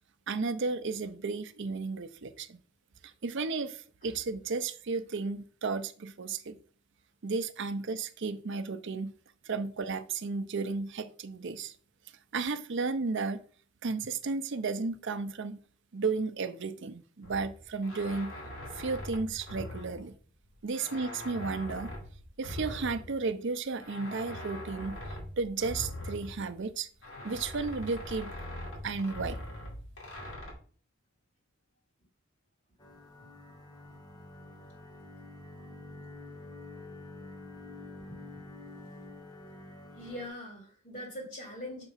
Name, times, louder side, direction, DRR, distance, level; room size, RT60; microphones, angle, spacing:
voice 1, 0.3-2.6 3.2-6.6 7.2-9.1 9.4-11.8 12.3-13.4 13.8-15.6 15.9-18.3 18.7-20.1 20.6-21.9 22.4-25.0 25.4-26.9 27.2-28.3 28.8-29.4, right 4 dB, 60° right, 0.6 m, -33 dB
sound 1, 17.2-20.4 20.7-23.3 23.8-26.7 27.0-30.5, left 1 dB, 65° left, 2.6 m, -42 dB
sound 2, 32.8-40.3, left 2 dB, 20° left, 1.2 m, -48 dB
voice 2, 39.9-41.9, left 1 dB, 40° left, 3.4 m, -43 dB
6.7 x 3.5 x 5.7 m
head